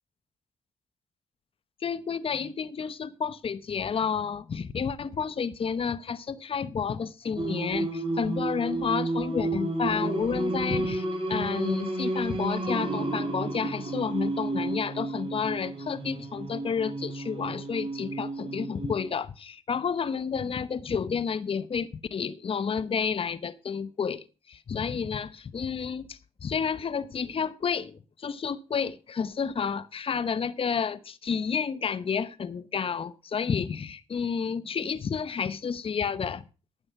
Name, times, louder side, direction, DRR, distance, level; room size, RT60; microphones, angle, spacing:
voice 1, 1.8-36.4, left 6 dB, 45° left, 1.0 m, -30 dB
Singing, 7.4-19.1, right 2 dB, 40° right, 5.4 m, -31 dB
12.0 x 8.9 x 5.9 m
supercardioid pair, 50°, 13 cm